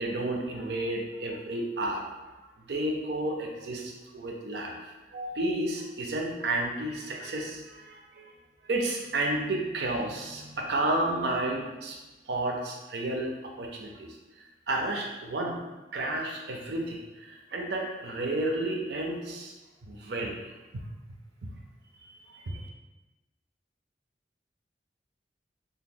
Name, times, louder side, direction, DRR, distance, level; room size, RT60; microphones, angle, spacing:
voice 1, 0.0-2.1 2.7-8.3 8.6-12.0 12.3-14.1 14.7-15.6 15.9-19.5 19.9-20.8 21.4-21.5 22.3-22.6, right 1 dB, 75° right, 1 dB, 0.5 m, -32 dB
2.8 x 2.0 x 3.6 m, 1.1 s
head